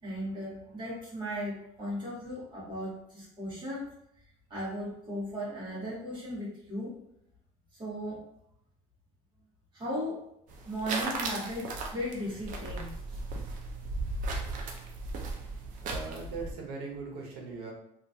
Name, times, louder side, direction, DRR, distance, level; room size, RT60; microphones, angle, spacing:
voice 1, 0.0-3.9 4.5-7.0 7.7-8.2 9.7-10.2 10.7-13.2, equal, 30° right, -6 dB, 1.4 m, -36 dB
sound 1, 10.5-16.5, right 3 dB, 50° right, 0.5 m, -36 dB
voice 2, 15.8-17.7, right 4 dB, 70° right, -1 dB, 0.9 m, -40 dB
3.0 x 2.4 x 2.6 m, 0.78 s
cardioid pair, 140°, 17 cm